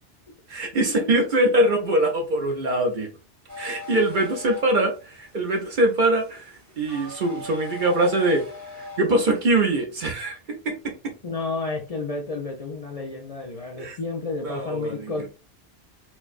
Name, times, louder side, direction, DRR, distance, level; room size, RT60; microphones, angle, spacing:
voice 1, 0.5-3.1 3.6-8.4 8.7-11.1 13.8-14.0 14.4-15.3, right 1 dB, 50° right, 0.8 m, -23 dB
sound 1, 3.5-9.4, left 3 dB, 20° right, 0.7 m, -41 dB
voice 2, 11.2-15.3, left 3 dB, 40° left, 0.6 m, -31 dB
4.4 x 2.3 x 2.4 m
omnidirectional pair, 1.1 m